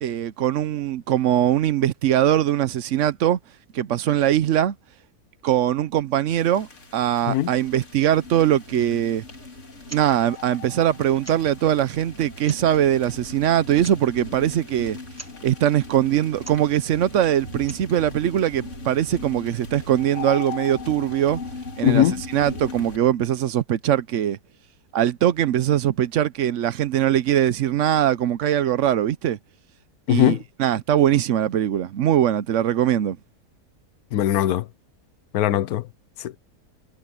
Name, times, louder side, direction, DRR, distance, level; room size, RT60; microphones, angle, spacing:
voice 1, 0.0-3.4 3.7-4.7 5.4-9.2 9.9-15.0 15.4-21.4 21.8-22.1 22.3-24.4 24.9-29.4 30.1-33.2, right 11 dB, 60° right, 0.9 m, -21 dB
sound 1, 6.3-23.0, left 4 dB, 45° left, 3.0 m, -38 dB
sound 2, 9.8-10.1 10.3-10.4 11.2-11.6 12.3-12.8 13.8-14.1 15.1-15.4 16.4-16.7 17.5-17.9, right 1 dB, 10° right, 1.2 m, -42 dB
voice 2, 21.8-22.1 30.1-30.4 34.1-34.6 35.3-35.9 36.2-36.4, left 13 dB, 70° left, 1.2 m, -20 dB
omnidirectional pair, 1.7 m